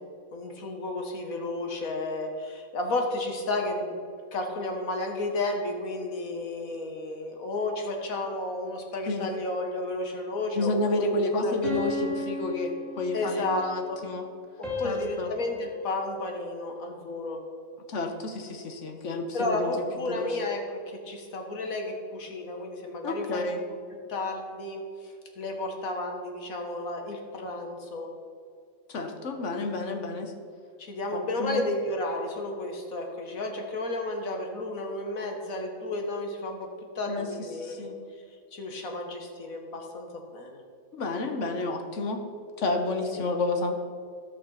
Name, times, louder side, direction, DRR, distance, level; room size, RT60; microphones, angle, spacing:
voice 1, 0.3-11.5 13.1-14.0 14.6-17.4 19.3-23.4 24.1-28.1 30.8-36.7 37.0-37.9 38.5-40.1 40.3-40.6 43.2-43.3, left 2 dB, 85° left, 3 dB, 1.8 m, -32 dB
voice 2, 10.5-14.3 14.8-15.3 17.9-19.7 20.1-20.3 23.0-23.6 28.9-30.3 31.1-31.7 37.1-37.3 37.6-38.0 40.9-42.2 42.6-43.8, left 2 dB, 60° left, 5 dB, 1.4 m, -30 dB
sound 1, 11.6-13.6 14.6-17.0, left 1 dB, ahead, 2.7 m, -36 dB
13.5 x 5.9 x 5.6 m, 2.3 s
omnidirectional pair, 1.4 m